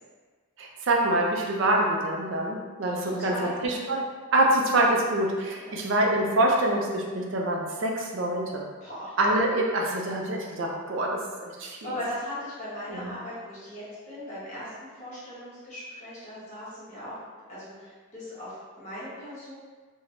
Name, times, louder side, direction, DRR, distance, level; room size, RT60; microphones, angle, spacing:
voice 1, 0.6-4.0 4.3-8.6 9.2-11.9 12.9-13.1, right 1 dB, 55° right, 0 dB, 0.4 m, -25 dB
voice 2, 3.0-3.8 5.6-5.7 8.8-9.2 11.5-14.7 15.0-17.2 17.5-19.5, left 1 dB, 30° left, -11 dB, 1.0 m, -39 dB
3.3 x 2.1 x 2.5 m, 1.5 s
head